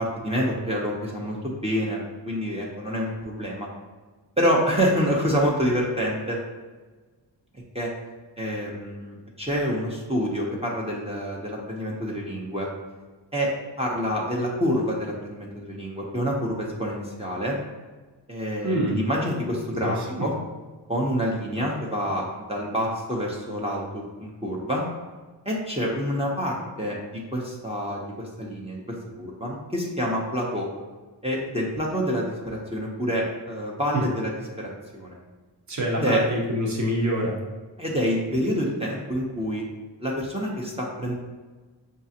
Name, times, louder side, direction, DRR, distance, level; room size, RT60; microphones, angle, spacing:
voice 1, 0.0-3.7 4.4-6.4 7.7-7.9 8.4-12.7 13.3-13.5 13.8-17.6 18.3-20.3 20.9-24.9 25.4-28.8 29.2-30.7 31.2-34.3 34.6-35.2 36.0-36.3 37.8-39.6 40.0-41.1, equal, 15° right, -4 dB, 0.7 m, -27 dB
voice 2, 18.6-19.0 19.8-20.3 35.7-37.4, equal, 40° right, -2 dB, 0.9 m, -26 dB
5.3 x 2.5 x 2.7 m, 1.3 s
cardioid pair, 65°, 44 cm